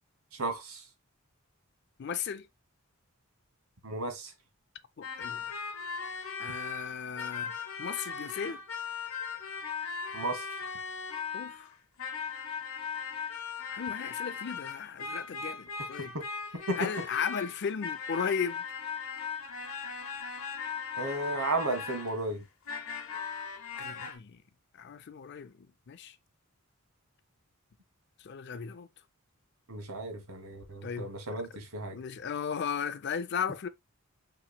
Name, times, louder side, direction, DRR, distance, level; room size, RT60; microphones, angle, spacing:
voice 1, 0.3-0.8 3.8-4.3 10.1-10.5 16.0-16.2 16.7-16.9 21.0-22.4 29.7-32.0, right 2 dB, 80° right, 1.2 m, -34 dB
voice 2, 2.0-2.5 5.0-5.5 6.4-7.5 7.8-8.6 11.3-11.7 13.7-16.1 16.8-18.6 23.8-24.4 24.7-25.5 25.9-26.2 28.2-28.9 30.8-31.1 31.9-33.7, left 7 dB, 50° left, 0.4 m, -35 dB
sound 1, 5.0-11.7 12.0-22.3 22.7-24.2, left 6 dB, 75° left, 0.9 m, -38 dB
5.7 x 3.0 x 2.2 m
head